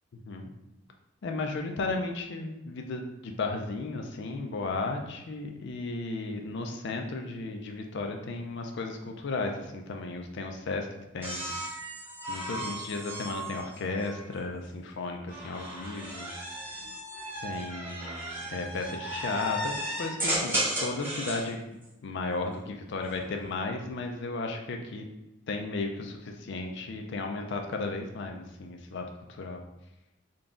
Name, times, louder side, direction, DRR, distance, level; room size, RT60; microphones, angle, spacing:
voice 1, 1.2-10.9 11.1-11.5 12.3-16.3 17.4-21.6 22.0-25.1 25.5-29.6, left 3 dB, 65° left, 3 dB, 0.5 m, -34 dB
sound 1, 11.2-14.5 15.3-21.5 23.0-23.5, equal, 10° right, 0.9 m, -35 dB
3.8 x 2.3 x 3.7 m, 0.94 s
head